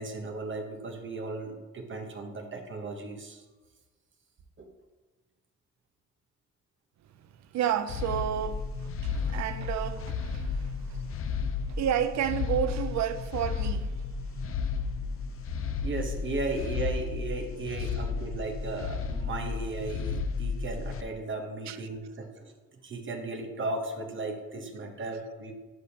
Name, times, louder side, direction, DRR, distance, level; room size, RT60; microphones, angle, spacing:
voice 1, 0.0-3.4 4.6-4.7 15.8-22.5 22.8-25.5, right 3 dB, 40° right, 1.0 m, -36 dB
voice 2, 7.5-14.8 15.1-15.9 17.8-18.0 21.7-21.8, right 9 dB, 65° right, 0.6 m, -32 dB
sound 1, 7.9-21.0, left 5 dB, 45° left, 0.6 m, -33 dB
11.0 x 5.1 x 2.9 m
cardioid pair, 90°, 30 cm